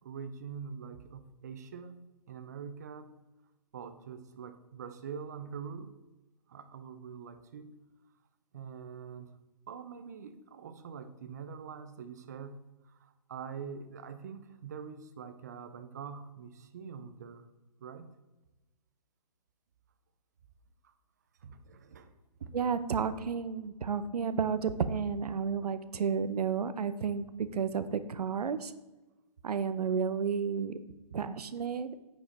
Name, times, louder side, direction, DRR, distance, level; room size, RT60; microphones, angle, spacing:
voice 1, 0.0-2.0 2.3-3.2 3.7-6.0 6.5-7.8 8.5-9.3 9.7-17.5 17.8-18.1 21.4-22.1 22.4-22.5, right 6 dB, 25° right, 10 dB, 0.4 m, -44 dB
voice 2, 22.5-28.7 29.4-30.8 31.1-31.9, right 6 dB, 70° right, 13 dB, 0.7 m, -32 dB
8.9 x 5.0 x 4.2 m, 1.1 s
hypercardioid pair, 160°, 21 cm